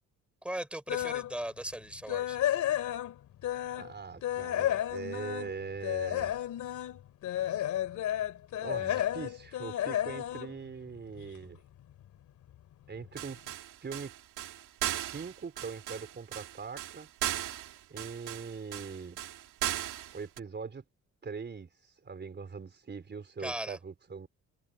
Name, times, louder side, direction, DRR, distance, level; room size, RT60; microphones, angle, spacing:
voice 1, 0.4-2.4 23.4-23.8, right 1 dB, 5° right, 4.4 m, -38 dB
sound 1, 0.9-1.3 1.7-3.9 4.2-11.4 11.8-12.1 12.5-12.6 13.0-13.1, left 12 dB, 75° left, 2.4 m, -32 dB
voice 2, 3.7-6.3 8.6-11.6 12.9-13.4 13.8-14.1 14.9-17.1 17.9-19.2 20.1-20.8 21.2-24.3, right 5 dB, 35° right, 4.4 m, -41 dB
sound 2, 13.2-20.4, right 13 dB, 85° right, 2.7 m, -37 dB
cardioid pair, 90°, 30 cm